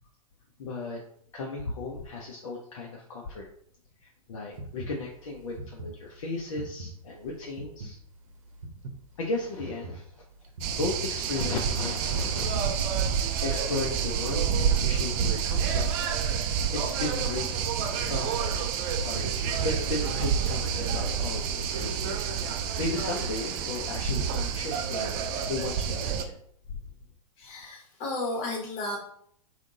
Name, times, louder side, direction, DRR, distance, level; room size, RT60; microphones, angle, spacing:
voice 1, 0.6-1.0 1.3-3.5 4.0-8.0 9.2-10.0 10.7-12.6 13.4-16.0 16.7-17.5 18.0-18.3 19.0-22.2 22.8-25.1 25.5-26.4, left 3 dB, 60° left, -1 dB, 0.7 m, -35 dB
sound 1, 4.5-11.3, right 2 dB, 65° right, 0.8 m, -42 dB
sound 2, 10.6-26.2, right 7 dB, 35° right, 0.4 m, -28 dB
voice 2, 27.4-29.0, left 2 dB, 35° left, -1 dB, 1.3 m, -33 dB
3.6 x 2.4 x 3.9 m, 0.66 s
figure-of-eight pair, 100°, 19 cm